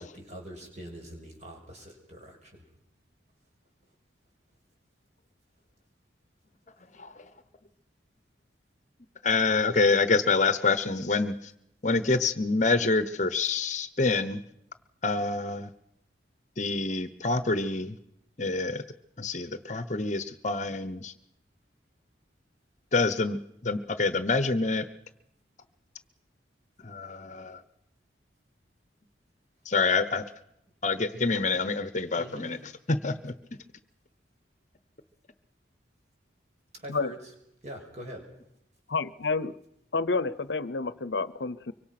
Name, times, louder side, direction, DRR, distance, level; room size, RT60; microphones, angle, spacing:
voice 1, 0.1-2.6 32.1-32.5 36.8-37.3 37.6-38.2, equal, 40° right, 1 dB, 6.1 m, -43 dB
voice 2, 9.2-11.5 11.8-14.4 15.0-15.7 16.6-18.0 18.4-18.8 19.2-21.1 22.9-23.4 23.6-24.8 26.8-27.6 29.6-30.2 30.8-32.6 32.9-33.3, left 3 dB, 40° left, 12 dB, 1.0 m, -26 dB
voice 3, 38.9-39.5 39.9-41.7, left 3 dB, 70° left, 17 dB, 0.8 m, -29 dB
24.5 x 24.0 x 6.0 m, 0.81 s
head